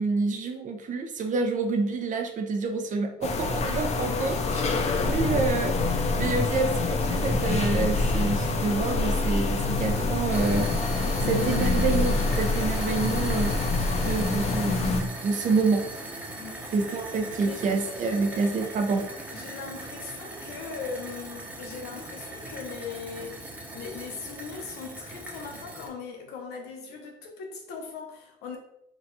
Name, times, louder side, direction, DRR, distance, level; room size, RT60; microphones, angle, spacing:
voice 1, 0.0-10.7 11.2-13.6 14.0-15.9 16.7-19.1, right 4 dB, 50° right, 0.7 m, -28 dB
sound 1, 3.2-15.0, left 3 dB, 40° left, 0.6 m, -26 dB
sound 2, 10.3-25.9, right 2 dB, 10° right, 0.9 m, -39 dB
voice 2, 17.4-18.4 19.3-28.6, left 5 dB, 80° left, 0.9 m, -39 dB
3.9 x 2.4 x 4.0 m
cardioid pair, 110°, 17 cm